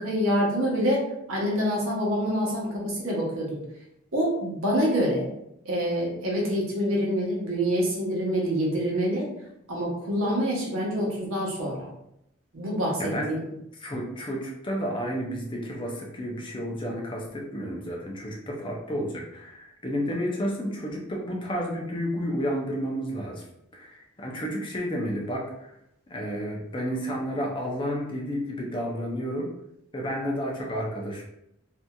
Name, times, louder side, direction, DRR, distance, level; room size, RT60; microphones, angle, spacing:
voice 1, 0.0-3.6 4.1-5.3 5.6-9.3 9.7-11.9 12.5-13.4, equal, 90° right, -3 dB, 0.9 m, -26 dB
voice 2, 13.0-13.3 13.8-23.4 23.7-25.7 26.1-29.5 29.9-31.2, equal, 25° left, -1 dB, 0.5 m, -31 dB
2.9 x 2.6 x 2.2 m, 0.80 s
head